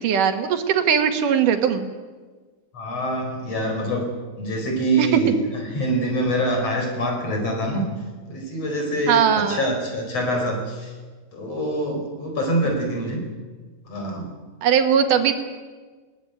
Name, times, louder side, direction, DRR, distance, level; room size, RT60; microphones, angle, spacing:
voice 1, 0.0-1.9 5.0-5.1 9.1-9.6 14.6-15.3, right 8 dB, 85° right, 6 dB, 3.2 m, -19 dB
voice 2, 2.7-4.1 4.4-7.9 8.3-10.9 11.3-13.2 13.9-14.3, right 1 dB, 50° left, 3 dB, 5.8 m, -25 dB
20.5 x 17.5 x 9.3 m, 1.4 s
omnidirectional pair, 3.6 m